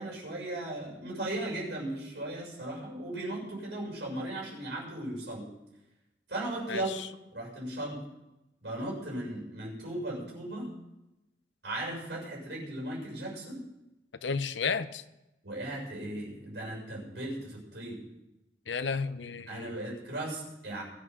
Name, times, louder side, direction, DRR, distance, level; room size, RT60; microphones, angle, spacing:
voice 1, 0.0-5.5 6.3-6.9 7.3-8.0 8.6-10.7 11.6-13.6 15.4-18.0 19.5-20.8, right 1 dB, 70° right, -3 dB, 6.6 m, -37 dB
voice 2, 6.7-7.1 14.2-15.0 18.7-19.8, left 5 dB, 85° left, 13 dB, 0.7 m, -33 dB
21.0 x 11.0 x 3.7 m, 0.94 s
head